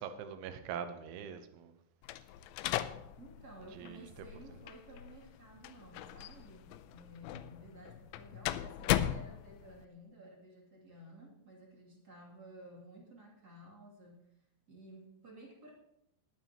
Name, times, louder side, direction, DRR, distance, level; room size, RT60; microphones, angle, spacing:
voice 1, 0.0-1.8 3.7-4.3, right 7 dB, 85° right, 3.4 m, -43 dB
sound 1, 2.0-9.9, left 13 dB, 85° left, 2.7 m, -38 dB
voice 2, 3.2-14.3 14.7-15.7, right 1 dB, 25° right, 2.5 m, -54 dB
21.0 x 9.0 x 3.0 m
omnidirectional pair, 5.3 m